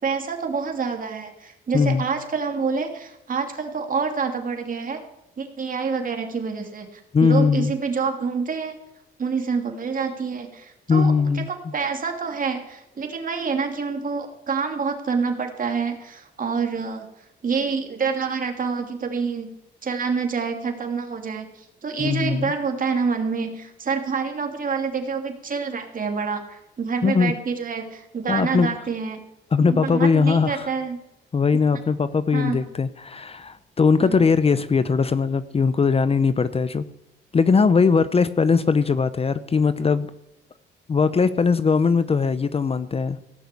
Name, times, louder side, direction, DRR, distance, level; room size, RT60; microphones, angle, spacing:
voice 1, 0.0-5.0 5.4-8.8 9.2-17.1 17.4-19.5 19.8-29.2 29.6-31.0 31.5-31.6 32.3-32.6 34.0-34.2, right 5 dB, 45° right, 4 dB, 2.9 m, -27 dB
voice 2, 1.7-2.0 7.1-7.7 10.9-11.5 22.0-22.5 27.0-27.3 28.3-28.7 29.5-30.7 31.3-36.8 37.3-40.1 40.9-43.2, left 5 dB, 30° left, 14 dB, 0.7 m, -20 dB
17.0 x 6.6 x 8.4 m, 0.88 s
cardioid pair, 90°, 20 cm